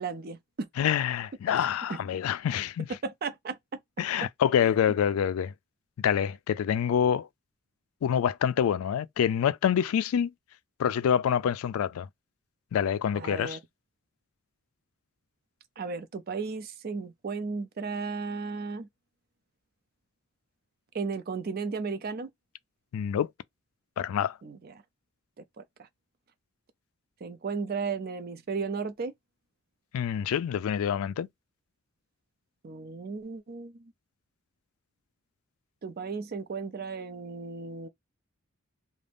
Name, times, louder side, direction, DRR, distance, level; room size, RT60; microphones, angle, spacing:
voice 1, 0.0-0.7 1.9-2.0 3.0-3.6 4.6-4.7 13.1-13.6 15.8-18.9 20.9-22.3 24.4-24.7 25.4-25.6 27.2-29.1 32.6-33.9 35.8-37.9, right 4 dB, 45° right, 0.5 m, -35 dB
voice 2, 0.8-2.9 4.0-5.5 6.0-7.3 8.0-10.3 10.8-12.1 12.7-13.6 22.9-23.3 24.0-24.4 29.9-31.3, left 8 dB, 85° left, 0.3 m, -26 dB
2.5 x 2.1 x 3.3 m
head